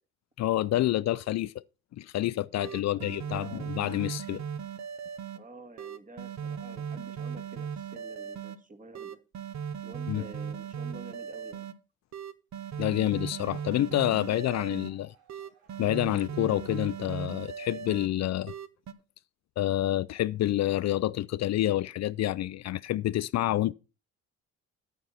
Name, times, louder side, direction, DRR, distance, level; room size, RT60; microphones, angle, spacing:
voice 1, 0.4-1.6 2.0-4.4 10.1-10.3 12.8-15.1 15.8-18.5 19.6-23.7, left 14 dB, 60° left, 0.4 m, -28 dB
sound 1, 2.2-2.3 2.6-5.4 5.8-8.6 8.9-11.7 12.1-14.9 15.3-18.1 18.5-18.9, right 7 dB, 65° right, 1.0 m, -38 dB
voice 2, 2.9-3.7 5.4-9.2 9.8-11.7, right 2 dB, 25° right, 1.7 m, -49 dB
sound 2, 12.6-17.6, right 6 dB, 90° right, 4.2 m, -66 dB
9.3 x 9.1 x 4.1 m
cardioid pair, 90°, 30 cm